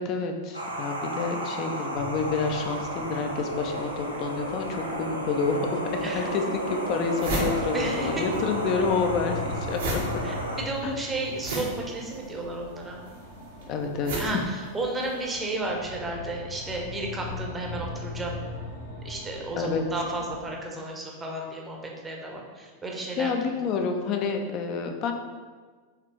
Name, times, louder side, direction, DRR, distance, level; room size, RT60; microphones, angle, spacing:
voice 1, 0.0-10.2 10.8-11.0 13.7-14.4 19.6-19.8 23.2-25.1, left 4 dB, 40° left, 5 dB, 0.5 m, -29 dB
sound 1, 0.5-10.6, equal, 85° right, 0.5 m, -32 dB
sound 2, 1.9-20.5, left 2 dB, 75° left, 1.0 m, -41 dB
sound 3, 5.9-6.0 6.6-6.7 6.9-8.4 8.7-15.2, right 1 dB, 60° right, 0.9 m, -34 dB
voice 2, 7.7-8.3 10.2-13.0 14.2-18.4 19.0-23.3, right 2 dB, 15° right, 0 dB, 0.8 m, -33 dB
4.9 x 3.3 x 3.0 m, 1.5 s
figure-of-eight pair, 90°, 0 cm